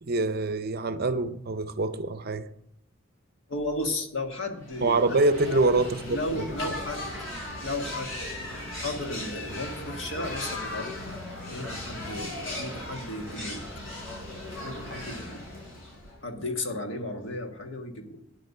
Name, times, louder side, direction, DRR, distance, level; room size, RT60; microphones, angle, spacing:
voice 1, 0.0-2.5 4.8-6.5, right 2 dB, 50° right, 0.7 m, -25 dB
voice 2, 3.5-5.0 5.5-5.6 6.1-7.3 7.6-8.2 8.8-11.1 11.4-13.7 14.6-15.4 16.2-18.2, left 2 dB, 60° left, 1.7 m, -34 dB
sound 1, 4.6-16.2, left 1 dB, 85° left, 5.4 m, -37 dB
10.5 x 8.3 x 5.5 m
head